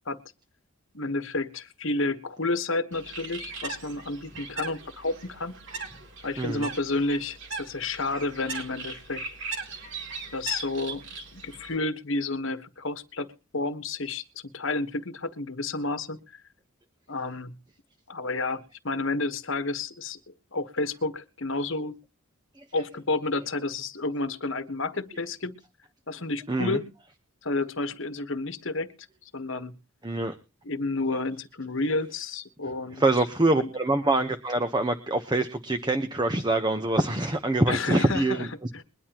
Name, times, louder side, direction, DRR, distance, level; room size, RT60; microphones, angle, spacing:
voice 1, 0.9-5.5 6.2-9.2 10.3-11.0 11.3-13.3 13.5-14.2 14.5-16.4 17.1-17.5 18.1-22.0 22.7-25.6 26.1-26.9 27.4-28.9 29.3-29.7 30.6-33.0 33.5-33.7 37.7-38.5 38.7-38.8, left 3 dB, 60° left, 11 dB, 1.3 m, -30 dB
Bird, 2.9-11.8, right 4 dB, 55° right, 3.3 m, -39 dB
voice 2, 6.4-6.7 22.5-22.6 26.5-26.8 30.0-30.3 32.9-38.8, right 2 dB, 20° right, 8 dB, 1.0 m, -25 dB
22.0 x 11.0 x 3.0 m, 0.31 s
head